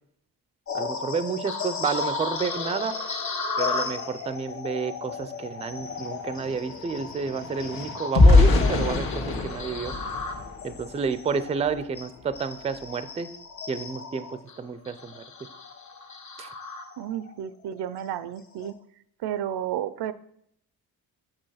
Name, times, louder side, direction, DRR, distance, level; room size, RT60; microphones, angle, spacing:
sound 1, 0.7-17.3 17.8-18.0 18.5-18.7, left 4 dB, 45° left, 1.3 m, -35 dB
voice 1, 0.7-3.0 3.6-10.0 10.6-13.3 13.7-15.2 16.4-16.5, right 5 dB, 20° right, 13 dB, 0.4 m, -30 dB
sound 2, 5.2-5.3 5.6-11.1 11.6-11.8 12.1-12.4, left 3 dB, 65° left, 1.6 m, -23 dB
voice 2, 17.0-18.8 19.2-20.1, right 10 dB, 85° right, 14 dB, 0.6 m, -32 dB
6.8 x 5.3 x 5.6 m, 0.70 s
cardioid pair, 125°, 39 cm